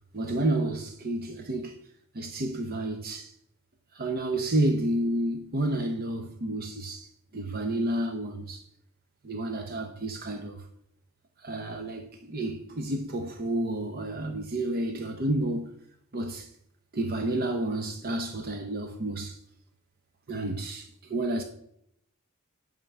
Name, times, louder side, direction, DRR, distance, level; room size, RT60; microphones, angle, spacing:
voice 1, 0.1-1.8 2.1-3.3 3.9-8.6 9.2-10.7 11.4-15.7 16.1-16.5 16.9-19.4 20.3-21.4, right 1 dB, 45° right, 0.8 m, -30 dB
9.0 x 3.7 x 6.9 m
head